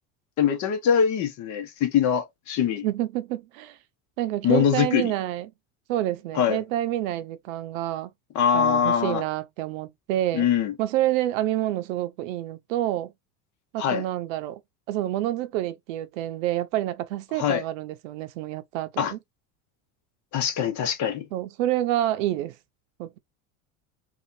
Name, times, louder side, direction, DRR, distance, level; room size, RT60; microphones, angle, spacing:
voice 1, 0.4-2.8 4.4-5.1 6.3-6.6 8.3-9.2 10.3-10.7 13.8-14.0 17.4-17.6 19.0-19.1 20.3-21.3, left 8 dB, 50° left, 1.0 m, -23 dB
voice 2, 2.8-3.8 4.2-5.5 5.9-8.1 8.5-10.5 10.8-13.1 13.7-14.6 14.9-19.2 21.3-22.6 23.0-23.2, right 13 dB, 85° right, 0.6 m, -28 dB
2.8 x 2.4 x 2.5 m
supercardioid pair, 115°, 38 cm